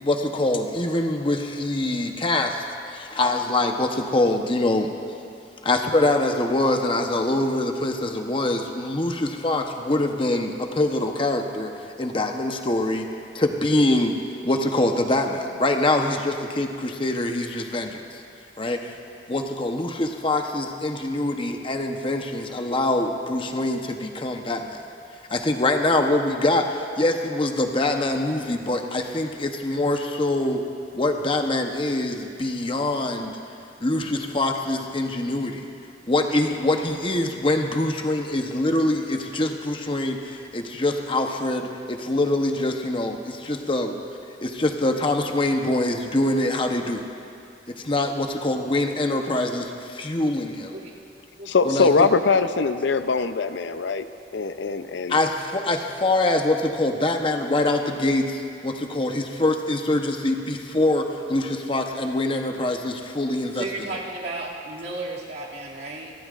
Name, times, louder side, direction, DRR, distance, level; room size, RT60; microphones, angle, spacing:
voice 1, 0.0-4.9 5.6-11.7 12.0-13.1 13.3-14.2 14.4-18.0 18.6-18.9 19.3-24.8 25.3-30.6 30.9-33.4 33.8-35.6 36.1-44.0 44.4-47.0 47.7-50.7 51.7-52.1 55.1-63.7, left 2 dB, 30° left, 4 dB, 0.9 m, -24 dB
voice 2, 51.5-54.1 54.3-55.2, left 4 dB, 75° left, 10 dB, 0.6 m, -22 dB
voice 3, 63.5-66.1, right 2 dB, 60° right, -5 dB, 2.5 m, -33 dB
28.0 x 13.0 x 2.5 m, 2.5 s
head